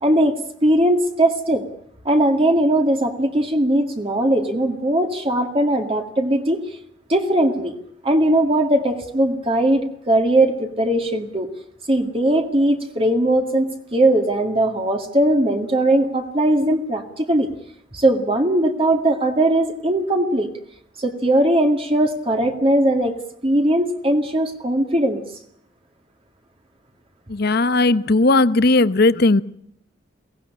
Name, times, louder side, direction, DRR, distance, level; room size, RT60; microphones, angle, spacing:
voice 1, 0.0-1.6 2.1-6.6 7.1-7.7 8.0-11.5 11.9-17.5 17.9-20.5 21.0-23.2 23.4-25.2, right 1 dB, 30° right, 4 dB, 2.1 m, -19 dB
voice 2, 27.3-29.4, left 2 dB, 60° left, 15 dB, 0.9 m, -16 dB
23.0 x 18.0 x 9.9 m, 0.71 s
head